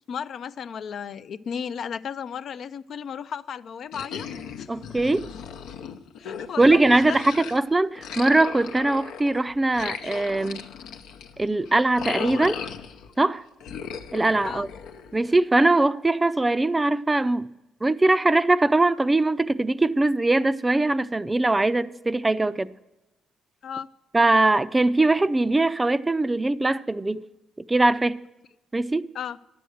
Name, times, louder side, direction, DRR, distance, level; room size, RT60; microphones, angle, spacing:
voice 1, 0.1-4.3 4.6-4.7 6.2-7.2 14.4-14.7 23.6-23.9 29.1-29.4, left 7 dB, 60° left, 0.4 m, -34 dB
sound 1, 3.9-7.6 8.0-13.2 13.6-15.3, left 7 dB, 90° left, 0.7 m, -37 dB
voice 2, 4.7-5.3 6.6-10.7 11.4-12.6 13.2-13.4 14.1-14.7 15.1-17.5 17.8-22.8 24.1-27.2 27.7-28.2 28.7-29.1, right 2 dB, 15° right, 0.4 m, -21 dB
11.0 x 7.8 x 6.3 m
cardioid pair, 90°, 0 cm